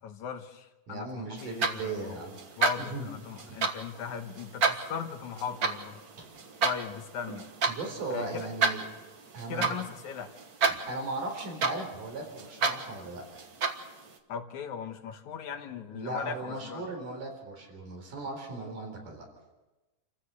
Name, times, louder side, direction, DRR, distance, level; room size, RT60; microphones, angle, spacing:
voice 1, 0.0-2.3 2.6-6.0 6.6-7.5 8.1-8.5 9.5-10.3 14.3-16.8, left 7 dB, 70° left, 7 dB, 2.4 m, -38 dB
voice 2, 0.9-2.4 2.8-3.1 3.5-3.6 6.2-6.3 7.7-8.8 9.3-9.8 10.7-13.2 15.9-19.3, right 2 dB, 85° right, 2 dB, 5.7 m, -37 dB
sound 1, 1.4-14.2, right 4 dB, 45° right, 1.3 m, -32 dB
28.5 x 15.0 x 6.8 m, 1.1 s
omnidirectional pair, 3.6 m